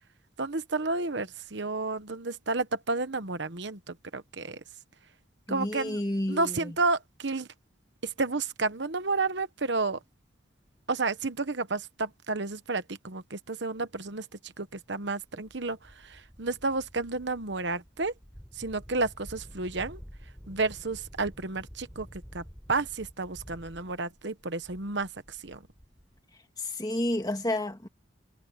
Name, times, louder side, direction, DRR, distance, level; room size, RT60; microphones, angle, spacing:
voice 1, 0.4-4.6 5.5-6.0 6.3-7.5 8.0-10.0 10.9-15.8 16.0-18.1 18.6-20.0 20.5-22.1 22.3-22.4 22.7-25.1 25.4-25.6, right 3 dB, 60° right, 1.1 m, -31 dB
voice 2, 5.5-6.8 26.6-27.9, left 1 dB, 20° left, 2.0 m, -30 dB
sound 1, 15.2-26.2, equal, ahead, 7.6 m, -50 dB
head